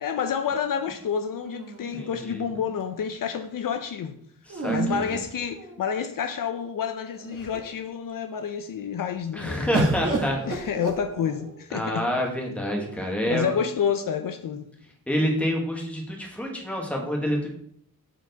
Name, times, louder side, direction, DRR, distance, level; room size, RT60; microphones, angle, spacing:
voice 1, 0.0-4.2 4.7-9.8 10.5-12.0 13.3-14.7, left 7 dB, 65° left, 0.6 m, -29 dB
sound 1, 1.4-2.5 4.5-6.0 6.8-6.9 7.2-7.8 9.7-11.6 12.5-13.2, right 3 dB, 40° right, 1.2 m, -31 dB
voice 2, 1.9-2.4 4.5-5.2 9.3-10.4 11.7-13.6 15.1-17.5, equal, 5° left, 1.3 m, -28 dB
7.1 x 4.6 x 4.0 m
wide cardioid pair, 170°, 35 cm